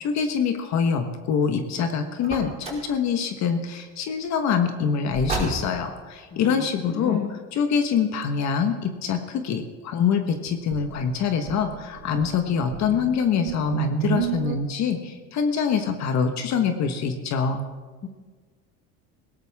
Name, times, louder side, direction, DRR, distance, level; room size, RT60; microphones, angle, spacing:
voice 1, 0.0-17.6, left 6 dB, 50° left, 6 dB, 1.4 m, -25 dB
Car, 2.2-3.0 5.1-6.0, right 2 dB, 20° right, 5.0 m, -31 dB
voice 2, 6.3-7.3 18.0-18.1, left 7 dB, 30° left, 2 dB, 1.5 m, -32 dB
sound 1, 10.5-14.6, right 14 dB, 85° right, 1.1 m, -32 dB
20.0 x 17.0 x 3.6 m, 1.4 s
supercardioid pair, 120°, 35 cm